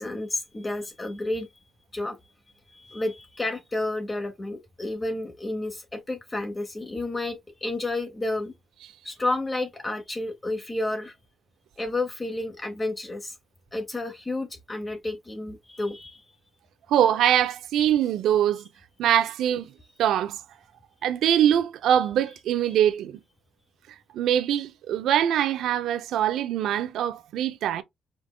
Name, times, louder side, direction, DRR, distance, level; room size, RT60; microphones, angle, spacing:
voice 1, 0.0-1.5 1.9-2.3 2.7-8.5 9.0-11.1 11.8-13.4 13.7-16.2, left 2 dB, 25° left, 0.9 m, -31 dB
voice 2, 16.9-18.6 19.0-19.7 20.0-20.4 21.0-23.2 24.1-27.8, right 10 dB, 80° right, 0.5 m, -23 dB
5.1 x 3.5 x 2.2 m
cardioid pair, 90°, 0 cm